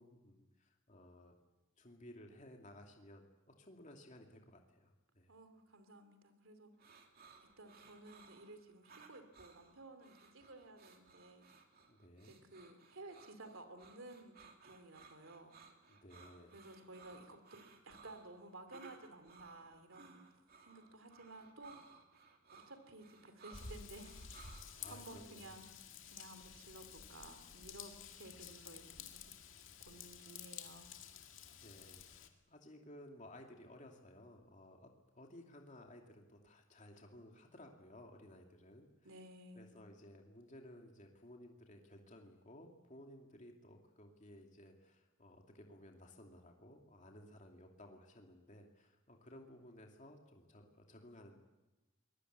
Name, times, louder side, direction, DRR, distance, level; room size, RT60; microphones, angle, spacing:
voice 1, 0.0-1.3 1.8-5.3 11.9-12.4 15.9-16.6 24.7-25.5 31.6-39.1 39.5-51.4, left 1 dB, 35° left, 2 dB, 2.6 m, -57 dB
voice 2, 5.3-6.7 7.6-11.5 12.2-15.6 16.5-20.3 20.6-21.7 22.5-24.2 24.9-29.2 29.8-30.9 39.0-39.7, right 2 dB, 80° right, 8 dB, 2.9 m, -55 dB
sound 1, 6.8-24.9, right 4 dB, 50° right, 2.9 m, -61 dB
Raindrop / Vehicle horn car horn honking / Trickle dribble, 23.5-32.3, left 7 dB, 70° left, 2.2 m, -52 dB
24.5 x 21.5 x 8.2 m, 1.1 s
head